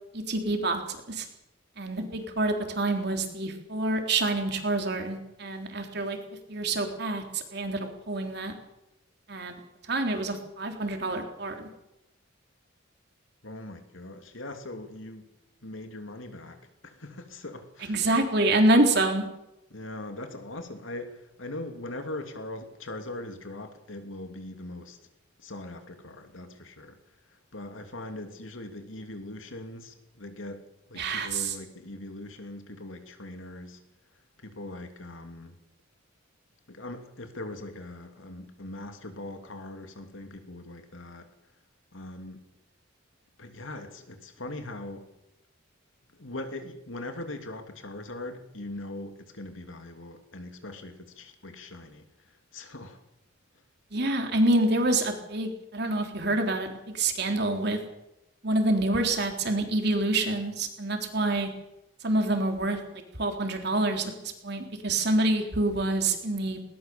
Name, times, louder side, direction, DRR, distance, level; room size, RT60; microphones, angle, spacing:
voice 1, 0.1-1.3 1.8-6.2 6.5-8.5 9.3-9.6 9.9-11.7 17.8-19.2 31.0-31.5 53.9-57.8 58.4-61.5 62.0-66.6, right 2 dB, 55° right, 4 dB, 3.5 m, -27 dB
voice 2, 13.4-15.3 15.6-18.0 19.7-25.0 25.4-27.0 27.3-33.8 34.4-35.6 36.7-41.3 41.9-42.4 43.4-45.1 46.1-53.0, left 2 dB, 90° left, 6 dB, 2.9 m, -41 dB
20.0 x 19.0 x 7.0 m, 0.88 s
head